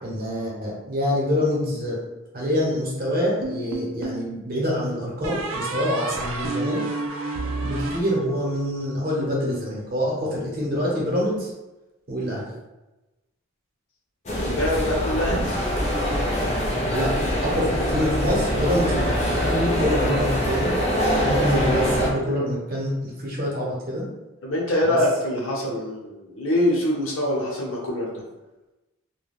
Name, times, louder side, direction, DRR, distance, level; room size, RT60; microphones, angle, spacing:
voice 1, 0.0-2.0 2.3-6.8 7.6-11.5 12.1-12.5 16.9-17.1 17.4-20.7 21.2-24.0 24.8-25.0, equal, 45° right, -4 dB, 0.7 m, -26 dB
sound 1, 3.4-4.3 5.2-8.7, right 2 dB, 75° right, 0.4 m, -30 dB
sound 2, 14.3-22.1, equal, 30° left, 0.5 m, -23 dB
voice 2, 14.4-15.5 24.4-28.2, left 1 dB, 70° left, -2 dB, 0.7 m, -24 dB
2.2 x 2.1 x 3.4 m, 1.0 s
head